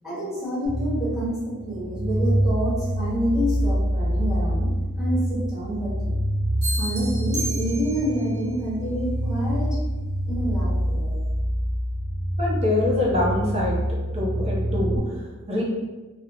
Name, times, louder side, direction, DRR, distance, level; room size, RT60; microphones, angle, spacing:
voice 1, 0.0-4.7 5.0-6.2 6.8-9.7 10.3-11.2, equal, ahead, -11 dB, 1.1 m, -28 dB
sound 1, 0.7-15.0, equal, 40° left, 0.8 m, -26 dB
sound 2, 6.6-8.3, right 1 dB, 80° right, 1.1 m, -32 dB
voice 2, 12.4-13.7 14.1-15.6, left 2 dB, 30° right, -4 dB, 0.6 m, -25 dB
2.8 x 2.0 x 2.5 m, 1.2 s
head